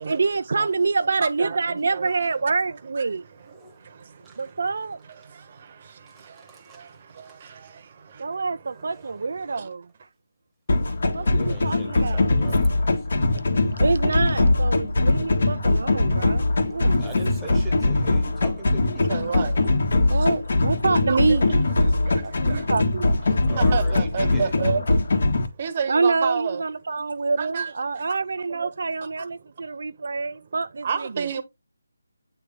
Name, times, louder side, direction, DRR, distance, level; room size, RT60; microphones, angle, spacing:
voice 1, 0.0-3.2 4.4-5.0 8.2-9.8 11.1-12.3 13.8-17.0 17.5-17.6 20.1-21.6 22.2-23.2 25.9-31.3, right 4 dB, 60° right, 0.3 m, -26 dB
voice 2, 1.2-1.6 1.9-2.1 19.1-19.5 21.1-21.6 22.5-22.6 23.6-24.8 25.6-26.6 27.4-27.7 28.6-28.7 30.8-31.4, right 6 dB, 35° right, 1.0 m, -28 dB
sound 1, 10.7-25.5, left 2 dB, 55° left, 1.6 m, -21 dB
voice 3, 11.2-13.2 13.6-13.7 17.0-19.1 19.5-19.7 23.5-24.5, right 2 dB, 5° right, 1.1 m, -39 dB
8.8 x 3.4 x 3.6 m
figure-of-eight pair, 165°, 0 cm